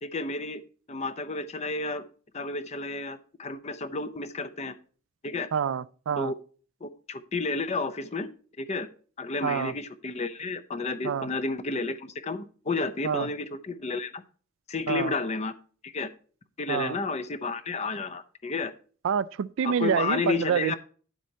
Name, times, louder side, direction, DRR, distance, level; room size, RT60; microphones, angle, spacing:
voice 1, 0.0-0.6 0.9-2.0 2.3-4.7 5.2-5.5 6.2-6.3 6.8-8.3 8.6-8.9 9.2-14.2 14.7-15.5 15.8-16.1 16.6-18.7 19.6-20.8, left 3 dB, 30° left, 0.5 m, -31 dB
voice 2, 5.5-6.3 9.4-9.7 11.0-11.3 13.0-13.3 14.9-15.1 16.7-17.0 19.0-20.7, right 7 dB, 60° right, 0.3 m, -27 dB
10.0 x 7.5 x 2.8 m
head